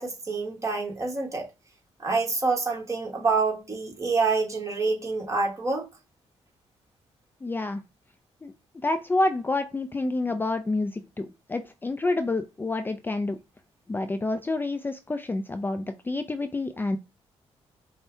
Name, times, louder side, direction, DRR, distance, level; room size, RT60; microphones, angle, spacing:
voice 1, 0.0-1.5 2.0-5.9, right 4 dB, 25° right, 1.4 m, -27 dB
voice 2, 7.4-7.8 8.4-8.5 8.8-13.4 13.9-17.0, left 2 dB, 20° left, 0.4 m, -28 dB
5.3 x 2.2 x 2.7 m
cardioid pair, 80°, 11 cm